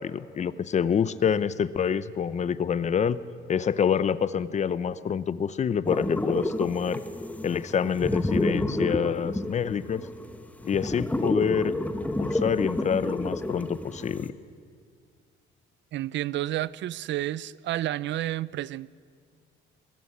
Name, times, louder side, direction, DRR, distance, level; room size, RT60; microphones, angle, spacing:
voice 1, 0.0-3.2 3.5-7.0 7.4-10.1 10.6-11.7 12.2-14.3, left 7 dB, 35° left, 16 dB, 0.7 m, -27 dB
sound 1, 5.8-14.3, left 1 dB, 5° left, 1.0 m, -30 dB
voice 2, 15.9-18.9, right 14 dB, 65° right, 21 dB, 0.5 m, -30 dB
21.5 x 14.5 x 9.8 m, 2.1 s
cardioid pair, 145°, 20 cm